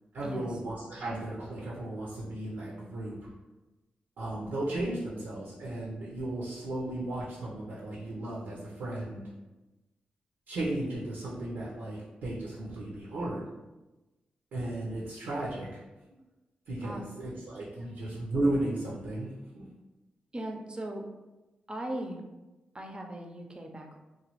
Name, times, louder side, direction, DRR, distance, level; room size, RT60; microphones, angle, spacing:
voice 1, 0.1-3.3 4.2-9.3 10.5-13.4 14.5-15.8 16.7-19.3 19.5-19.7, right 1 dB, 90° right, -5 dB, 0.6 m, -35 dB
voice 2, 20.3-21.0 21.7-22.2 22.7-24.0, right 1 dB, 30° right, 2 dB, 0.5 m, -38 dB
3.0 x 2.1 x 3.0 m, 1.1 s
cardioid pair, 50°, 3 cm